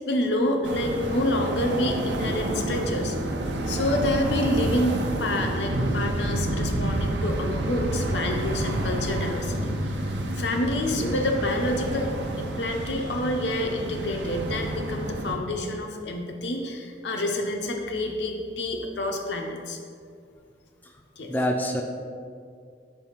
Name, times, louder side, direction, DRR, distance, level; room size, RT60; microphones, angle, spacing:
voice 1, 0.1-3.2 3.7-19.8 21.2-21.3, left 1 dB, 85° left, 2 dB, 0.7 m, -28 dB
sound 1, 0.6-15.4, right 1 dB, 90° right, 0.6 m, -29 dB
voice 2, 21.3-21.8, equal, 10° left, 2 dB, 0.4 m, -26 dB
5.2 x 3.4 x 5.6 m, 2.3 s
head